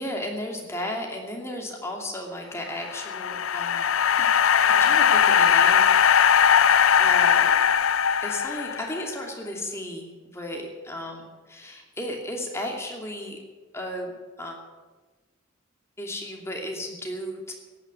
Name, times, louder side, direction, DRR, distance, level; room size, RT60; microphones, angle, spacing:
voice 1, 0.0-3.9 4.2-4.3 4.7-6.4 7.0-7.5 8.2-13.4 13.7-14.6 16.0-17.5, left 1 dB, 15° left, 1 dB, 2.7 m, -34 dB
sound 1, 2.7-9.1, left 8 dB, 85° left, 0.6 m, -20 dB
15.5 x 9.7 x 9.6 m, 1.3 s
head